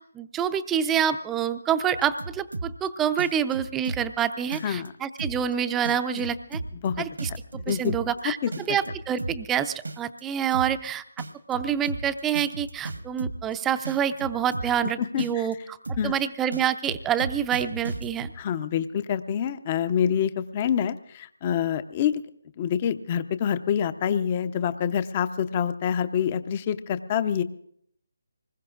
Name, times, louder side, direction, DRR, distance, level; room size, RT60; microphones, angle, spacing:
voice 1, 0.1-6.6 7.0-8.4 8.7-11.0 11.5-15.5 16.0-18.3, right 9 dB, 10° right, 11 dB, 0.5 m, -27 dB
sound 1, 1.9-2.9 3.2-4.2 4.5-4.9 5.2-5.5 5.9-8.2 8.5-9.5 9.9-10.2 10.5-10.9 11.2-13.5 13.9-14.9 15.2-15.5 15.9-16.2 16.5-18.3, right 2 dB, 80° right, 1.3 m, -34 dB
voice 2, 7.7-8.0 8.4-8.8 15.0-15.5 16.0-16.1 18.4-22.2 22.6-27.4, left 8 dB, 30° left, 13 dB, 0.7 m, -26 dB
25.0 x 20.5 x 2.5 m, 0.68 s
figure-of-eight pair, 155°, 0 cm